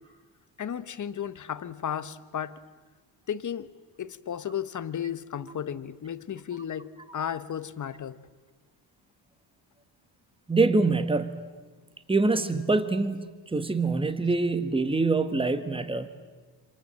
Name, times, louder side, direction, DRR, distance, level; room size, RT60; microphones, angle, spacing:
voice 1, 0.6-2.6 3.3-3.7 4.0-8.2, left 9 dB, 40° left, 14 dB, 1.2 m, -34 dB
voice 2, 10.5-11.4 12.1-16.1, right 3 dB, 10° right, 11 dB, 1.5 m, -25 dB
27.0 x 26.5 x 7.7 m, 1.4 s
cardioid pair, 125°, 47 cm